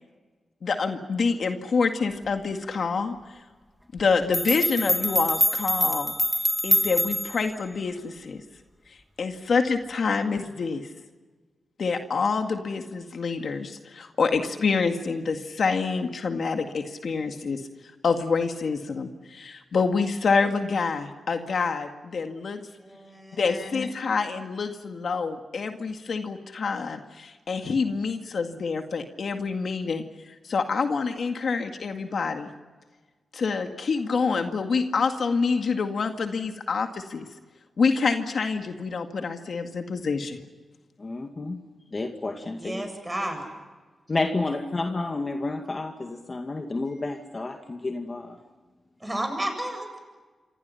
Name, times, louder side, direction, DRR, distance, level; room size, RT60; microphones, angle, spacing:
voice 1, 0.6-3.2 3.9-6.2 6.6-8.4 9.2-10.9 11.8-17.6 18.0-22.6 23.4-32.5 33.3-37.3 37.8-40.4, left 4 dB, 65° left, 5 dB, 2.0 m, -27 dB
sound 1, 4.0-4.1 4.3-7.5, equal, 5° left, 1.9 m, -25 dB
voice 2, 22.8-23.5 42.6-43.5 46.9-47.0 49.0-50.0, right 1 dB, 15° right, 6 dB, 7.9 m, -32 dB
voice 3, 41.0-41.6 41.9-42.8 44.1-48.4, left 3 dB, 35° left, 4 dB, 2.2 m, -30 dB
29.0 x 25.5 x 5.8 m, 1.3 s
cardioid pair, 80°, 0 cm